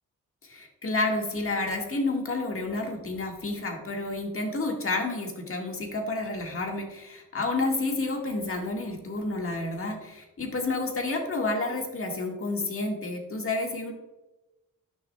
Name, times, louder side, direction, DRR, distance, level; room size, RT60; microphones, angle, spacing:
voice 1, 0.4-13.9, left 2 dB, 45° left, 2 dB, 1.6 m, -30 dB
10.5 x 6.2 x 2.2 m, 1.0 s
cardioid pair, 80°, 32 cm